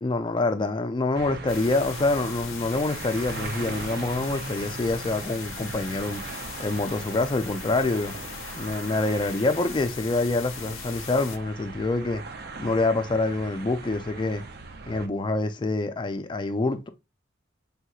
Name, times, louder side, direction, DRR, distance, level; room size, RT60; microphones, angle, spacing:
voice 1, 0.0-6.2 6.6-8.2 8.5-12.2 12.6-14.4 14.9-16.9, left 2 dB, 25° left, 0.3 m, -26 dB
sound 1, 1.1-15.1, right 4 dB, 55° right, 0.5 m, -39 dB
sound 2, 1.5-11.4, left 9 dB, 85° left, 0.5 m, -40 dB
3.5 x 2.9 x 2.3 m
head